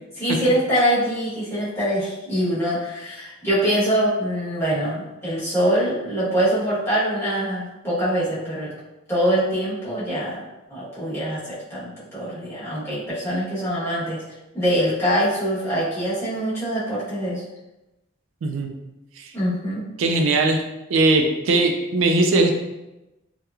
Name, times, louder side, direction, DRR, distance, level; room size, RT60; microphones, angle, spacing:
voice 1, 0.2-8.7 9.1-10.4 10.7-14.2 14.5-17.4 19.3-19.9, equal, 15° left, -10 dB, 1.0 m, -24 dB
voice 2, 20.0-20.6 20.9-22.6, right 2 dB, 85° right, 3 dB, 0.4 m, -19 dB
2.9 x 2.2 x 2.3 m, 0.98 s
head